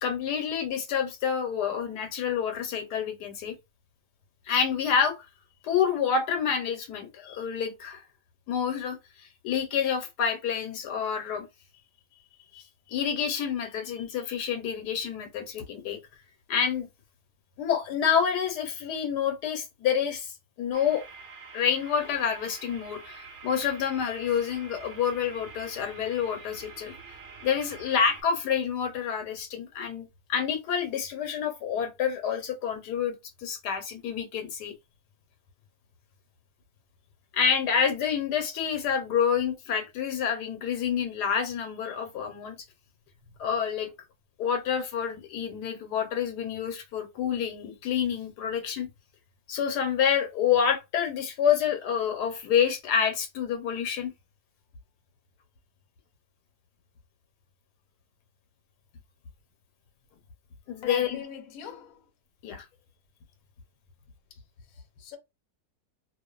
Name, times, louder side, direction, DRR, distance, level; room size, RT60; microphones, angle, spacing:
voice 1, 0.0-3.6 4.5-5.3 5.6-8.0 8.5-11.4 12.5-12.6 12.9-16.0 16.5-16.9 17.6-20.3 20.6-21.0 21.5-26.9 27.4-33.1 33.4-34.7 37.3-42.6 43.4-43.9 44.4-48.9 49.5-54.1 60.7-61.2 62.4-62.6, left 7 dB, 80° left, 1.3 m, -28 dB
sound 1, 20.7-28.2, right 4 dB, 50° right, 0.6 m, -47 dB
voice 2, 60.8-62.1 64.3-64.4 64.7-65.2, left 8 dB, 65° left, 1.0 m, -41 dB
2.5 x 2.5 x 2.2 m
omnidirectional pair, 1.7 m